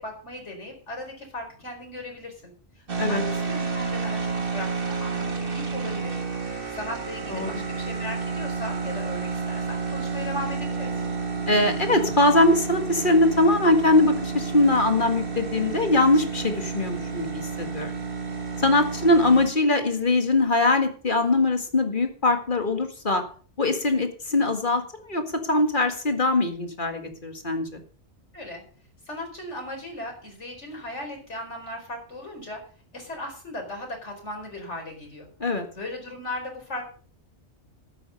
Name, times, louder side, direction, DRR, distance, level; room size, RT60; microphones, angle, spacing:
voice 1, 0.0-10.9 28.3-28.6 29.1-32.6 32.9-35.3 35.7-36.9, left 1 dB, 90° left, 1 dB, 4.9 m, -37 dB
sound 1, 2.9-19.5, right 4 dB, 50° right, 1.9 m, -30 dB
voice 2, 11.5-17.9 18.6-23.2 23.6-24.8 25.1-25.2 25.5-27.8 35.4-35.7, left 2 dB, 45° left, 6 dB, 2.1 m, -22 dB
12.0 x 9.6 x 5.4 m, 0.42 s
omnidirectional pair, 1.2 m